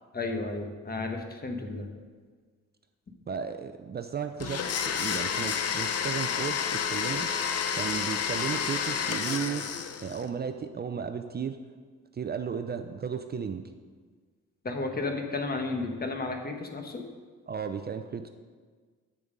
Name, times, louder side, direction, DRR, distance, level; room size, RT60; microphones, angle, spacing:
voice 1, 0.1-1.9 14.6-17.0, left 3 dB, 30° left, 4 dB, 1.4 m, -33 dB
voice 2, 3.3-9.6 10.0-11.6 12.1-13.6 17.5-18.3, right 7 dB, 35° right, 7 dB, 0.5 m, -34 dB
Domestic sounds home sounds, 4.4-10.2, left 7 dB, 55° left, 0.8 m, -30 dB
8.9 x 6.8 x 5.2 m, 1.5 s
cardioid pair, 90°, 30 cm